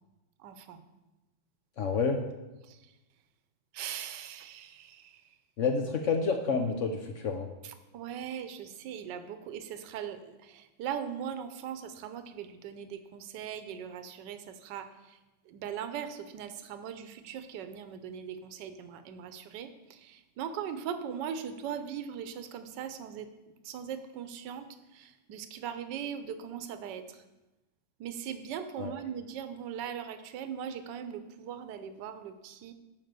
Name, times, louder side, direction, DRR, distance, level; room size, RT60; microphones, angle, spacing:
voice 1, 0.4-0.8 2.7-2.8 3.7-5.1 7.9-14.9 15.5-23.3 23.6-27.0 28.0-32.7, right 8 dB, 70° right, 10 dB, 1.3 m, -40 dB
voice 2, 1.8-2.2 5.6-7.5 28.8-28.9, left 4 dB, 70° left, 4 dB, 0.7 m, -29 dB
8.6 x 5.4 x 6.7 m, 1.0 s
omnidirectional pair, 2.1 m